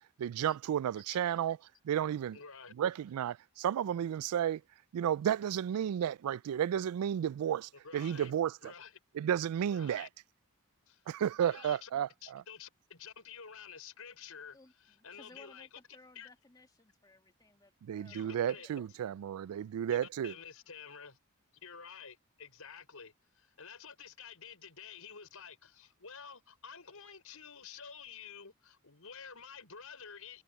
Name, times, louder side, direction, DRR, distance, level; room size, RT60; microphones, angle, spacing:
voice 1, 0.2-1.6 1.8-2.4 2.8-4.6 4.9-8.5 9.2-10.1 11.1-12.4 17.8-20.3, right 9 dB, 90° right, 0.3 m, -32 dB
voice 2, 2.3-2.7 7.8-8.3 8.6-9.0 9.7-10.1 10.9-11.0 11.4-11.9 12.2-15.7 16.2-16.3 18.0-18.7 19.9-21.2 21.6-30.4, left 6 dB, 75° left, 5.3 m, -50 dB
voice 3, 14.5-18.9, left 2 dB, 15° left, 2.0 m, -60 dB
head